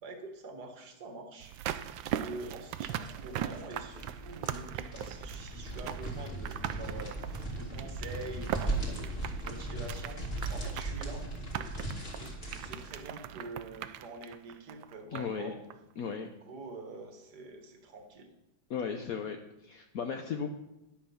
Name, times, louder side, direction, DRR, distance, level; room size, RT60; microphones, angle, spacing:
voice 1, 0.0-1.6 2.1-10.2 10.5-11.3 11.5-15.6 16.2-18.3, right 3 dB, 50° right, 4 dB, 2.0 m, -46 dB
sound 1, 1.4-15.4 15.7-15.8, right 11 dB, 75° right, 1.2 m, -40 dB
sound 2, 2.5-13.1, right 2 dB, 25° left, 2.7 m, -38 dB
voice 2, 15.1-15.5 16.0-16.3 18.7-19.4 19.6-20.5, left 6 dB, 65° left, 4 dB, 0.9 m, -35 dB
12.0 x 8.6 x 5.6 m, 0.92 s
omnidirectional pair, 2.4 m